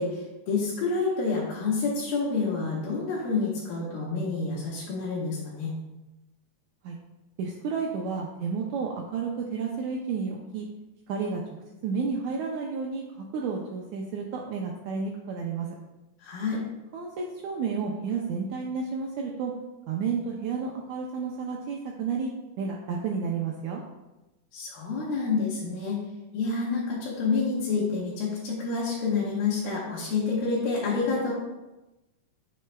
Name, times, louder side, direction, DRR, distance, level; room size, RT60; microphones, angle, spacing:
voice 1, 0.0-5.8 16.2-16.7 24.5-26.0 26.3-31.3, left 4 dB, 80° left, -8 dB, 3.2 m, -28 dB
voice 2, 7.4-10.7 11.1-11.4 11.8-15.7 16.9-19.5 19.9-22.3 22.6-23.8, right 5 dB, 80° right, 0 dB, 1.7 m, -31 dB
9.4 x 6.7 x 2.2 m, 1.0 s
omnidirectional pair, 4.0 m